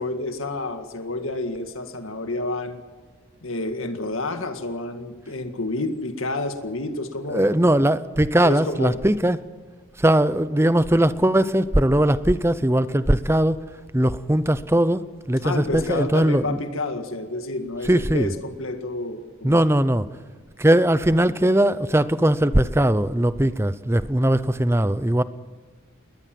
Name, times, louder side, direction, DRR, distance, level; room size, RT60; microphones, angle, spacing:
voice 1, 0.0-2.8 3.4-7.4 7.7-7.8 8.4-9.0 15.4-19.6, left 2 dB, 80° left, 1.9 m, -29 dB
voice 2, 7.3-9.5 10.0-13.6 13.9-16.6 17.8-18.3 19.4-20.1 20.6-25.2, right 1 dB, 10° right, 0.7 m, -20 dB
21.0 x 19.5 x 7.7 m
head